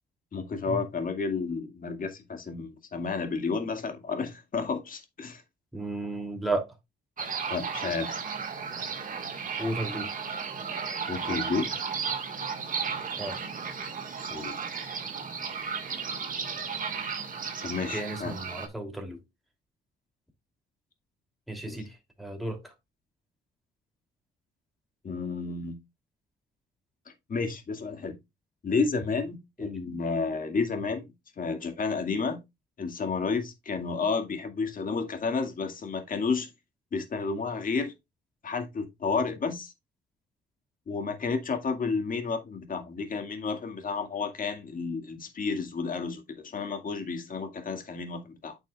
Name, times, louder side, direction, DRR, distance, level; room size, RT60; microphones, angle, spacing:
voice 1, 0.3-5.4 7.5-8.2 11.1-11.7 14.3-14.6 17.6-18.3 21.6-21.8 25.0-25.8 27.3-28.2 28.6-31.1 31.4-32.4 32.8-36.5 36.9-37.9 38.4-39.7 40.9-48.6, left 4 dB, 45° left, 2.0 m, -31 dB
voice 2, 5.7-6.7 9.6-10.1 13.2-13.4 17.9-19.2 21.5-22.7 29.6-29.7, right 2 dB, ahead, 2.8 m, -33 dB
sound 1, 7.2-18.7, right 6 dB, 45° right, 1.8 m, -34 dB
9.0 x 6.3 x 2.4 m
cardioid pair, 90°, 20 cm